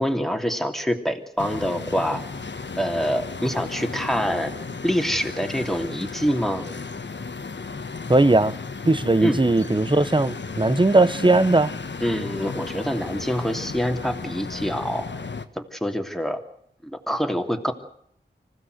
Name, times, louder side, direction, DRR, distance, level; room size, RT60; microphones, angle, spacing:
voice 1, 0.0-2.2 2.8-4.5 4.8-6.7 9.2-9.4 12.0-15.1 15.5-16.4 16.8-17.7, equal, ahead, 3.0 m, -25 dB
sound 1, 1.4-15.5, left 4 dB, 75° left, 1.5 m, -34 dB
voice 2, 8.1-8.6 8.8-11.7, right 2 dB, 25° right, 0.9 m, -18 dB
26.0 x 16.0 x 8.1 m
wide cardioid pair, 70°, 19 cm